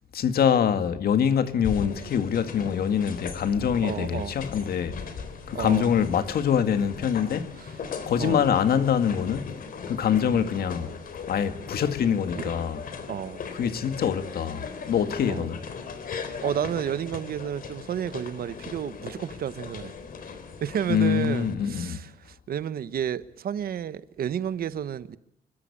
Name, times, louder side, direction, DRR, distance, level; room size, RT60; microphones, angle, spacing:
voice 1, 0.1-5.0 5.5-7.5 8.1-9.6 9.9-10.9 11.3-12.8 13.5-15.6 20.9-22.0, left 8 dB, 85° left, 1.9 m, -24 dB
sound 1, 1.6-21.5, left 5 dB, 70° left, 3.8 m, -38 dB
voice 2, 3.8-4.3 5.5-5.9 8.2-8.5 10.2-10.4 12.4-12.5 13.1-13.4 15.3-15.5 16.4-19.9 20.6-25.2, right 9 dB, 75° right, 1.1 m, -31 dB
26.0 x 22.0 x 8.5 m
wide cardioid pair, 170°, 15 cm